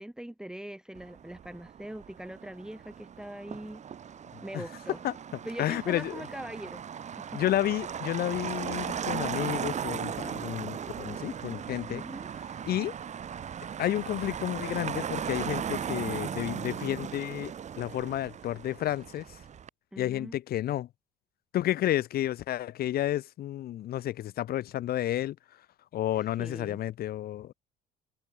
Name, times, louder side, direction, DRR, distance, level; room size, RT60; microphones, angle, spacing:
voice 1, 0.0-3.8 4.4-5.0 5.4-6.8 7.2-7.4 11.9-12.3 19.9-20.4 26.1-26.8, right 1 dB, 5° right, 3.1 m, -42 dB
Motor vehicle (road), 0.9-19.7, right 8 dB, 45° right, 3.1 m, -37 dB
voice 2, 5.6-6.2 7.3-12.0 12.6-12.9 13.8-17.5 17.8-19.2 20.0-20.9 21.5-25.3 25.9-27.5, left 13 dB, 65° left, 1.8 m, -31 dB
cardioid pair, 110°, 17 cm